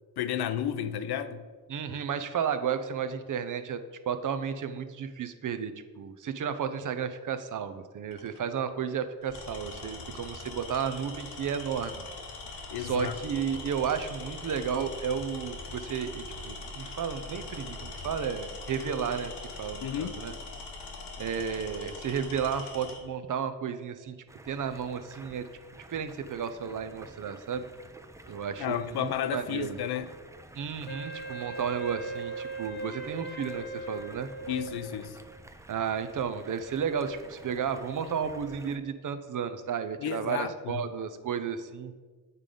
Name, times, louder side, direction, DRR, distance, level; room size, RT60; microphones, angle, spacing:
voice 1, 0.2-1.5 12.7-13.1 19.8-20.2 28.6-30.1 34.5-35.2 40.0-40.8, left 10 dB, 70° left, 0.5 m, -32 dB
voice 2, 1.7-3.8 4.1-12.0 12.8-20.3 21.2-24.2 24.5-25.5 25.9-27.7 28.3-29.8 30.5-34.3 35.7-41.9, right 7 dB, 50° right, 0.6 m, -33 dB
Tools, 8.1-8.4 9.2-23.0, left 3 dB, 85° left, 1.3 m, -42 dB
Stream, 24.3-38.8, right 2 dB, 10° right, 0.4 m, -51 dB
Wind instrument woodwind instrument, 30.9-35.1, right 2 dB, 25° left, 0.9 m, -39 dB
8.1 x 3.8 x 5.1 m
cardioid pair, 85°, 40 cm